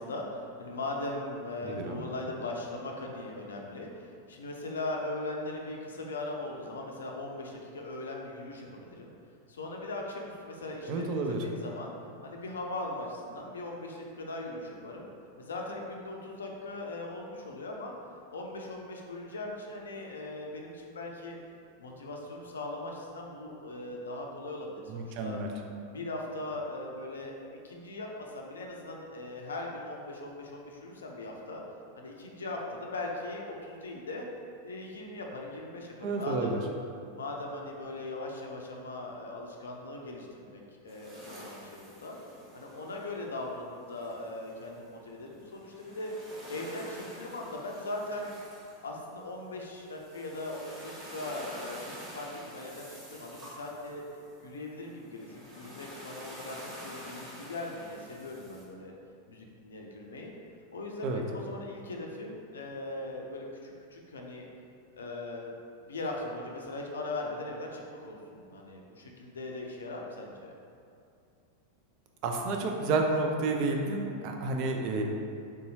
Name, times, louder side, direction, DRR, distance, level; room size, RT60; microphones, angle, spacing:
voice 1, 0.0-9.1 9.5-11.9 12.2-15.1 15.4-17.9 18.3-21.4 21.8-25.4 25.9-27.3 27.6-31.6 32.0-34.3 34.6-36.6 37.1-42.2 42.5-48.3 48.8-54.0 54.4-58.9 59.3-60.3 60.7-64.5 64.9-65.5 65.9-70.5, left 2 dB, 70° left, 0 dB, 0.4 m, -39 dB
voice 2, 1.6-2.1 10.9-11.4 24.9-25.5 36.0-36.5 61.0-61.2 72.2-75.0, right 3 dB, 40° right, 2 dB, 0.4 m, -30 dB
sound 1, 40.9-58.7, equal, 25° right, 1.1 m, -48 dB
3.5 x 2.7 x 2.7 m, 2.5 s
figure-of-eight pair, 90°, 0 cm